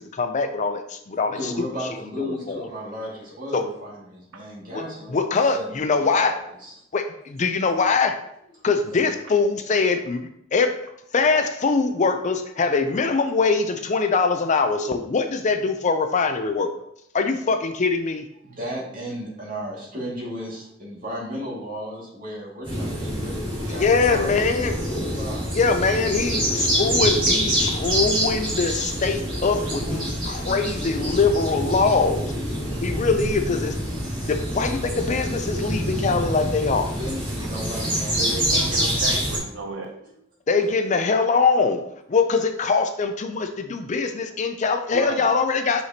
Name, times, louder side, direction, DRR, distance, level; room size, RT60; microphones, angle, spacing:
voice 1, 0.0-1.5 2.2-2.7 3.5-3.6 4.7-4.8 5.1-6.4 6.9-8.2 8.6-10.2 10.5-10.7 11.1-16.7 17.1-18.2 23.7-24.8 25.5-32.3 32.8-33.7 34.2-36.9 40.5-41.8 42.1-45.8, left 4 dB, 35° left, 7 dB, 0.5 m, -22 dB
voice 2, 1.3-6.7 8.9-9.0 18.4-25.6 36.8-38.8 40.0-40.1, equal, 45° right, -5 dB, 2.1 m, -35 dB
sound 1, 22.6-39.4, equal, 25° right, 2.2 m, -26 dB
voice 3, 38.2-39.9 44.9-45.3, right 2 dB, 70° right, 3 dB, 0.7 m, -33 dB
5.9 x 5.6 x 2.8 m, 0.75 s
head